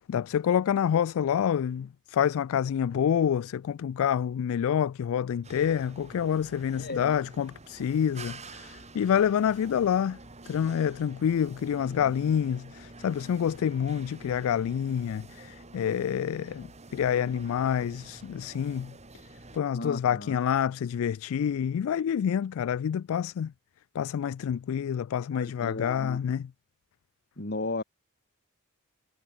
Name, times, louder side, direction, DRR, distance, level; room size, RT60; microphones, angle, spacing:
voice 1, 0.1-10.2 10.5-18.9 19.5-23.5 23.9-26.5, left 8 dB, 65° left, 0.3 m, -27 dB
sound 1, 5.4-19.6, right 3 dB, 30° right, 2.7 m, -48 dB
voice 2, 6.8-7.1 11.8-12.2 19.7-20.4 25.3-26.2 27.4-27.8, left 2 dB, 45° left, 2.8 m, -35 dB
head